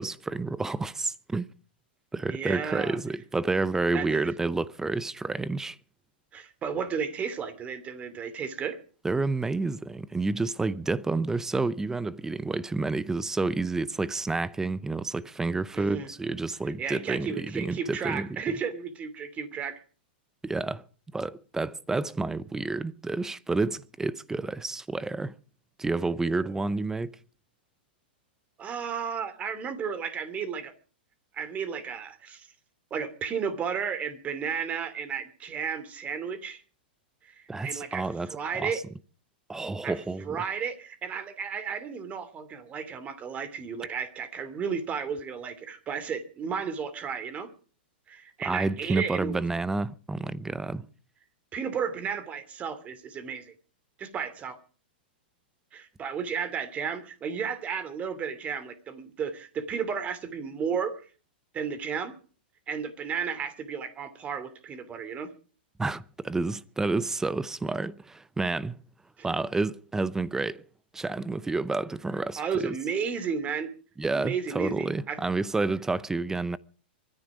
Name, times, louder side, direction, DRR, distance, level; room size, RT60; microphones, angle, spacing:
voice 1, 0.0-1.5 2.1-5.8 9.0-18.3 20.4-20.8 21.1-25.4 25.8-27.1 37.5-38.7 39.5-40.4 48.4-50.8 65.8-68.8 69.2-70.6 70.9-72.7 74.0-76.6, right 3 dB, 10° right, 0.6 m, -29 dB
voice 2, 2.3-3.0 3.9-4.3 6.3-8.8 15.7-16.1 16.8-19.8 26.4-26.5 28.6-30.7 31.3-32.5 32.9-36.6 37.2-38.8 39.8-40.0 40.2-47.5 48.1-49.4 51.5-53.5 54.0-54.6 55.7-61.0 61.5-62.2 62.7-65.3 69.2-69.3 72.4-73.7 74.1-75.2, right 6 dB, 25° right, 2.6 m, -33 dB
23.5 x 10.5 x 5.0 m
hypercardioid pair, 125°, 6 cm